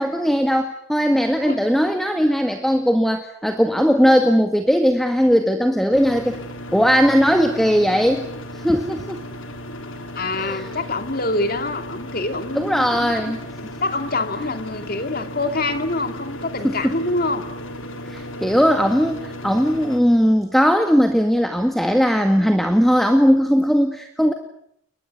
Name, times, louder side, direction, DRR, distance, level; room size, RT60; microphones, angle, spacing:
voice 1, 0.0-6.4 6.7-8.3 8.5-9.2 10.4-10.7 12.6-13.4 16.6-16.7 18.1-24.3, equal, ahead, 5 dB, 1.9 m, -18 dB
voice 2, 1.1-1.6 10.2-13.3 13.8-17.5, left 2 dB, 45° left, 8 dB, 2.5 m, -26 dB
sound 1, 5.9-20.0, equal, 80° left, 3.6 m, -35 dB
30.0 x 20.5 x 9.5 m, 0.73 s
head